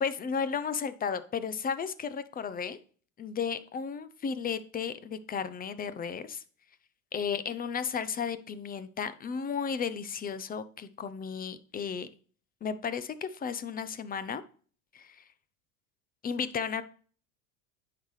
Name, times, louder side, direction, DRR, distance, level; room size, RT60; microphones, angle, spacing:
voice 1, 0.0-2.8 3.2-6.4 7.1-12.1 12.6-14.4 14.9-15.2 16.2-16.8, left 6 dB, 25° left, 14 dB, 0.6 m, -34 dB
9.3 x 5.8 x 3.2 m, 0.43 s
supercardioid pair, 100°, 37 cm